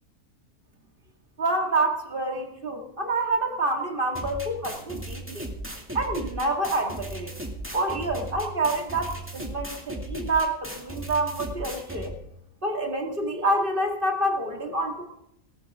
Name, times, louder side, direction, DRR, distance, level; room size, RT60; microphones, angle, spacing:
voice 1, 1.4-5.5 5.9-7.3 7.7-12.1 12.6-15.0, right 2 dB, 35° right, 2 dB, 2.3 m, -27 dB
sound 1, 4.1-12.1, right 1 dB, 10° right, 2.3 m, -37 dB
19.0 x 13.0 x 3.7 m, 0.79 s
omnidirectional pair, 1.5 m